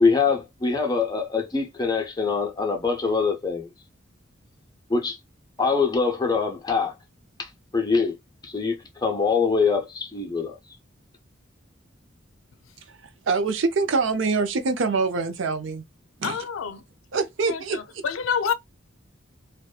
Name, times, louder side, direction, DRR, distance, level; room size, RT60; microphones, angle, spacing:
voice 1, 0.0-3.7 4.9-5.2 5.6-6.9 7.4-8.2 8.4-10.6, left 4 dB, 20° left, 0.6 m, -24 dB
voice 2, 12.9-15.8 16.2-16.4 17.1-18.0, right 4 dB, 70° right, 0.5 m, -25 dB
voice 3, 16.2-16.8 17.5-18.5, left 7 dB, 90° left, 0.4 m, -28 dB
2.7 x 2.2 x 2.3 m
head